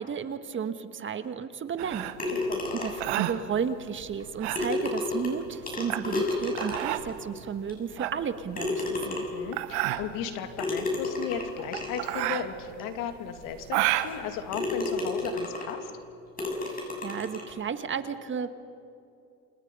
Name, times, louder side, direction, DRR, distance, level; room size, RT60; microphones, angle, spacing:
voice 1, 0.0-2.0 2.7-9.2 16.6-18.6, right 7 dB, 35° right, 10 dB, 1.5 m, -33 dB
sound 1, 1.8-15.3, right 15 dB, 90° right, 1.3 m, -32 dB
sound 2, 2.2-3.2 4.2-4.3 4.5-7.1 7.7-7.8 8.5-9.5 10.6-12.1 12.8-12.9 13.4-13.5 14.0-14.2 14.5-15.8 16.4-17.5, left 2 dB, 25° left, 7.3 m, -31 dB
voice 2, 9.0-15.9, left 8 dB, 70° left, 7 dB, 2.6 m, -36 dB
29.5 x 27.5 x 5.6 m, 2.5 s
supercardioid pair, 105°, 33 cm